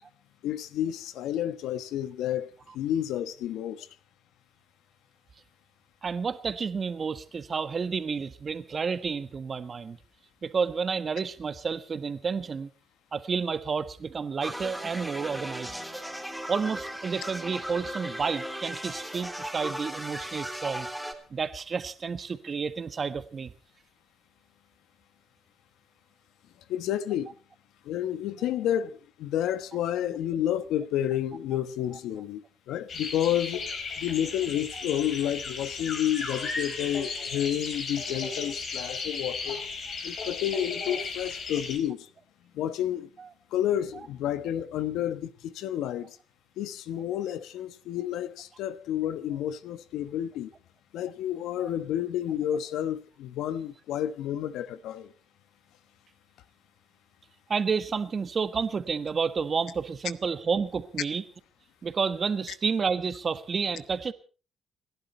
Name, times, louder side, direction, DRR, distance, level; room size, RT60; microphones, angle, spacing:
voice 1, 0.4-2.5 2.7-3.9 26.7-27.3 27.8-33.6 34.0-39.6 40.0-42.1 42.5-43.1 43.5-46.2 46.6-50.5 50.9-55.1, left 11 dB, 90° left, 1.1 m, -30 dB
voice 2, 6.0-10.0 10.4-12.7 13.1-15.8 16.5-20.9 21.3-23.5 36.4-36.5 51.6-51.7 57.5-61.2 61.8-64.1, right 5 dB, 40° right, 1.5 m, -30 dB
sound 1, 14.4-21.1, equal, ahead, 3.1 m, -37 dB
sound 2, 32.9-41.8, left 4 dB, 60° left, 4.6 m, -35 dB
29.0 x 11.5 x 4.4 m
cardioid pair, 90°, 0 cm